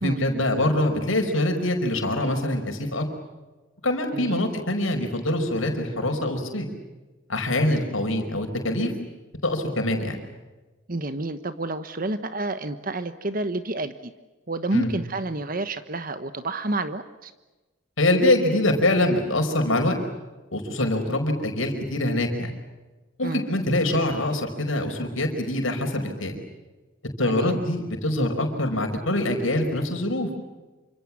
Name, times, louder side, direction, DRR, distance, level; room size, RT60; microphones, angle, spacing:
voice 1, 0.0-3.1 3.8-6.7 7.3-8.9 9.4-10.2 14.7-14.9 18.0-20.0 20.5-22.5 23.2-26.3 27.2-30.3, left 1 dB, 85° left, 4 dB, 5.1 m, -24 dB
voice 2, 4.1-4.5 10.9-14.1 14.5-17.3 23.2-23.4 27.3-27.6, right 2 dB, 45° right, 11 dB, 1.2 m, -29 dB
28.0 x 26.5 x 7.4 m, 1.2 s
head